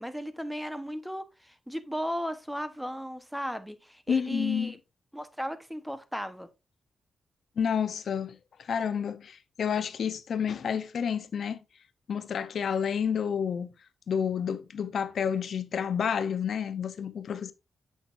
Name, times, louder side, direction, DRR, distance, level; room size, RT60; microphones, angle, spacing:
voice 1, 0.0-4.8 5.1-6.5, equal, ahead, 1.0 m, -35 dB
voice 2, 4.1-4.7 7.6-11.6 12.1-13.7 14.1-17.5, left 7 dB, 70° left, 0.7 m, -30 dB
8.1 x 6.2 x 2.6 m
cardioid pair, 75°, 0 cm